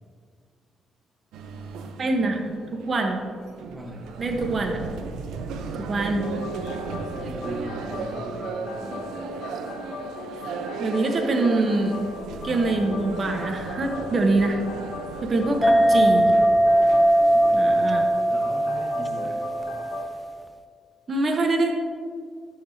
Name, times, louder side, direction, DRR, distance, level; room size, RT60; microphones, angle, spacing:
sound 1, 1.3-18.1, right 5 dB, 85° right, 0.7 m, -36 dB
voice 1, 2.0-2.4 2.7-3.2 4.2-4.8 5.8-6.3 10.8-12.0 12.4-14.6 15.2-16.3 17.5-18.1 21.1-21.7, right 2 dB, 40° right, 3 dB, 1.0 m, -24 dB
voice 2, 3.7-4.2 6.4-9.3 15.4-16.7 17.3-17.8 18.3-19.4, equal, 15° right, -3 dB, 1.2 m, -41 dB
sound 2, 6.2-20.1, left 2 dB, 80° left, 1.1 m, -38 dB
sound 3, 15.6-20.4, right 1 dB, 15° left, 0.4 m, -20 dB
13.5 x 7.0 x 2.8 m, 2.1 s
cardioid pair, 90°, 0 cm